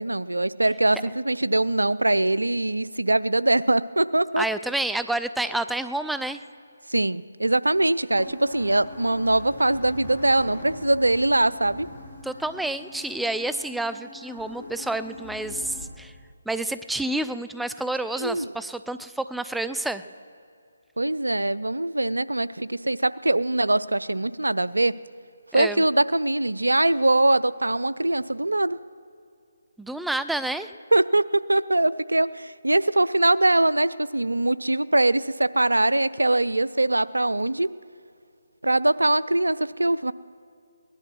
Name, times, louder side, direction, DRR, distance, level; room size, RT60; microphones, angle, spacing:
voice 1, 0.0-4.4 6.9-11.9 18.2-18.5 21.0-24.9 25.5-28.8 30.9-37.7 38.6-40.1, right 2 dB, 85° right, 17 dB, 0.4 m, -22 dB
voice 2, 4.4-6.4 12.2-16.1 16.5-20.0 25.5-25.8 29.8-30.7, right 2 dB, ahead, 12 dB, 0.4 m, -29 dB
sound 1, 8.1-15.8, left 2 dB, 25° left, 4.4 m, -42 dB
18.5 x 11.5 x 6.2 m, 2.4 s
figure-of-eight pair, 150°, 0 cm